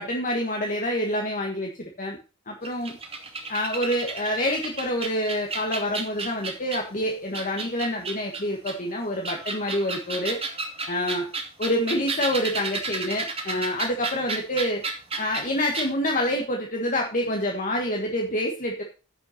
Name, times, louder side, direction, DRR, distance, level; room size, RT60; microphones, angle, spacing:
voice 1, 0.0-2.2 2.5-3.0 3.5-10.4 10.9-11.3 11.6-14.8 15.2-18.8, left 1 dB, 40° left, 1 dB, 1.6 m, -27 dB
sound 1, 2.6-6.9 7.3-8.7 9.2-15.5 15.7-15.9, right 4 dB, 30° right, 2.2 m, -32 dB
10.0 x 5.9 x 5.8 m, 0.33 s
head